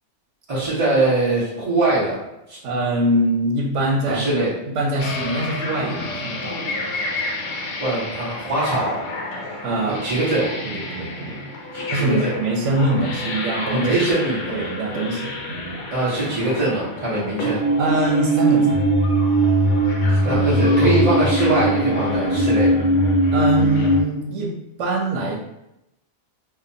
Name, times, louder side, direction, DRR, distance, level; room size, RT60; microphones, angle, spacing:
voice 1, 0.5-2.2 2.5-2.6 4.1-4.5 7.8-9.0 9.8-10.5 11.7-12.3 13.7-14.5 15.9-17.6 20.1-22.7, right 2 dB, 35° right, -10 dB, 0.6 m, -22 dB
voice 2, 2.6-4.2 4.7-6.6 9.6-10.2 10.6-11.4 11.9-13.9 14.5-15.8 17.8-18.9 23.3-24.5 24.8-25.4, right 2 dB, 85° right, 1 dB, 0.9 m, -23 dB
sound 1, 5.0-24.0, right 1 dB, 90° left, 0.9 m, -23 dB
2.7 x 2.1 x 2.6 m, 0.86 s
omnidirectional pair, 1.2 m